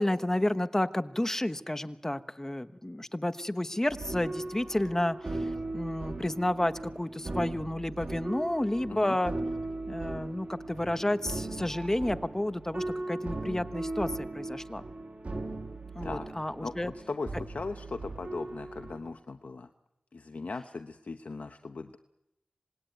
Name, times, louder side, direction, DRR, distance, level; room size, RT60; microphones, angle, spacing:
voice 1, 0.0-9.3 9.9-14.8 15.9-16.9, left 1 dB, 20° left, 11 dB, 1.1 m, -31 dB
sound 1, 3.9-19.0, right 2 dB, 60° right, 3.0 m, -38 dB
voice 2, 16.0-19.7 20.1-22.0, left 3 dB, 75° left, 7 dB, 1.0 m, -39 dB
27.0 x 19.5 x 9.3 m, 0.88 s
wide cardioid pair, 70°, 3 cm